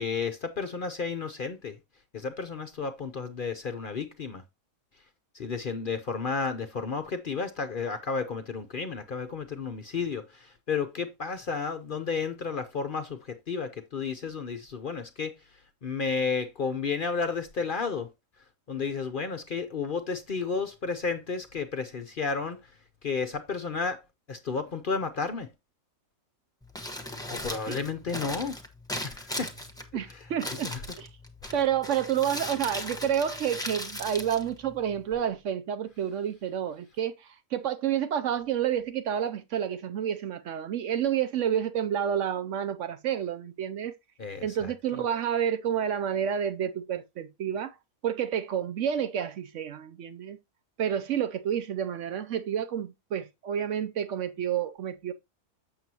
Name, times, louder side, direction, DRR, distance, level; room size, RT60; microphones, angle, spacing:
voice 1, 0.0-1.8 2.1-4.4 5.3-15.3 15.8-18.1 18.7-22.7 23.0-24.0 24.3-25.5 27.3-28.6 29.0-29.5 30.1-30.3 30.6-30.8 31.4-31.5 44.2-44.5 44.9-45.0, left 5 dB, 50° left, 0.7 m, -32 dB
Crumpling crinkling, 26.6-35.2, left 1 dB, 5° left, 1.0 m, -38 dB
voice 2, 29.9-31.1 31.5-43.9 44.4-47.7 48.0-50.4 50.8-55.1, right 9 dB, 65° right, 0.9 m, -29 dB
7.7 x 6.7 x 2.8 m
omnidirectional pair, 1.5 m